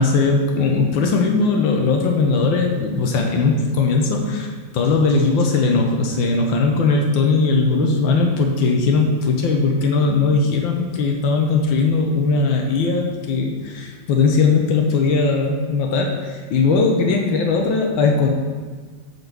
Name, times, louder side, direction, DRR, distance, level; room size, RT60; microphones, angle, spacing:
voice 1, 0.0-18.3, left 4 dB, 90° left, 1 dB, 1.6 m, -19 dB
9.0 x 4.2 x 6.6 m, 1.5 s
omnidirectional pair, 2.0 m